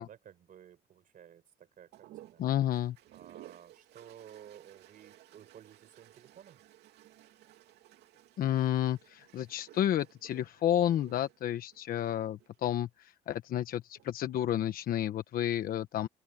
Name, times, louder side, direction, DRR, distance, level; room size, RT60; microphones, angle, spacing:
voice 1, 0.0-2.4 3.1-6.6, right 10 dB, 55° right, 5.3 m, -54 dB
sound 1, 1.9-12.6 13.8-14.3, right 14 dB, 80° right, 2.6 m, -57 dB
voice 2, 2.4-3.0 8.4-16.1, left 11 dB, 60° left, 1.2 m, -31 dB
open air
cardioid pair, 110°, 17 cm